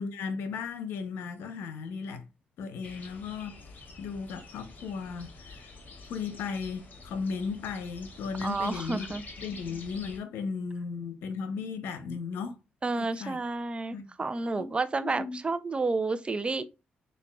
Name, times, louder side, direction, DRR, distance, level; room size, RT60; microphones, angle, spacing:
voice 1, 0.0-2.2 2.6-3.6 4.0-5.7 6.1-12.6 13.0-13.4 13.9-14.1 14.6-15.4, left 5 dB, 80° left, 0.7 m, -36 dB
sound 1, 2.8-10.2, left 3 dB, 50° left, 1.5 m, -47 dB
voice 2, 8.4-9.2 12.8-16.7, right 3 dB, 30° right, 0.6 m, -30 dB
6.6 x 2.5 x 2.3 m
supercardioid pair, 60°, 4 cm